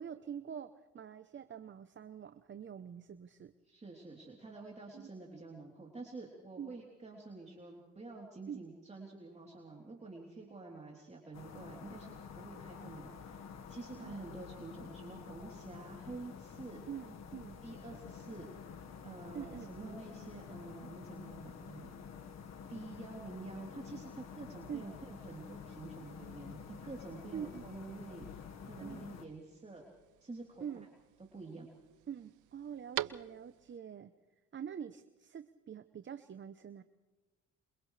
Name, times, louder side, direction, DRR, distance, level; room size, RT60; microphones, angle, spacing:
voice 1, 0.0-3.5 4.9-5.1 6.6-6.7 8.5-8.6 11.9-12.0 14.0-14.2 16.9-17.6 19.3-19.9 24.7-24.9 27.3-27.6 28.8-29.1 30.6-30.9 32.1-34.1 34.5-36.8, right 8 dB, 40° right, 10 dB, 0.9 m, -45 dB
voice 2, 3.6-16.9 17.6-18.5 19.0-22.1 22.7-28.3 28.7-29.9 30.2-30.9 31.3-31.7, right 3 dB, 20° right, -2 dB, 3.6 m, -48 dB
sound 1, 11.3-29.3, left 6 dB, 60° left, 1.7 m, -49 dB
sound 2, 25.3-33.8, right 14 dB, 80° right, 0.7 m, -48 dB
28.0 x 28.0 x 3.4 m, 1.2 s
cardioid pair, 90°, 30 cm